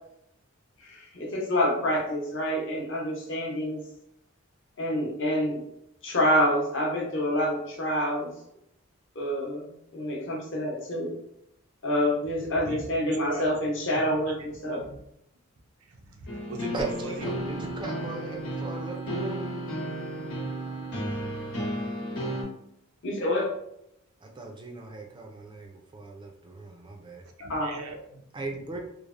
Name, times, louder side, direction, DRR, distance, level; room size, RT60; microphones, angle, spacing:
voice 1, 0.8-3.8 4.8-5.6 6.0-8.3 9.2-9.6 9.9-11.1 11.8-14.8 23.0-23.5 27.5-27.7, equal, 60° left, -2 dB, 0.7 m, -27 dB
voice 2, 12.4-13.6 14.2-15.0 15.8-18.1 27.4-28.2 28.5-28.6, right 3 dB, 85° right, 2 dB, 0.5 m, -41 dB
sound 1, 16.3-22.4, right 1 dB, 85° left, 1.0 m, -33 dB
voice 3, 16.7-19.4 24.2-27.2 28.3-28.8, right 3 dB, 20° right, 2 dB, 0.3 m, -38 dB
3.2 x 2.0 x 2.4 m, 0.77 s
head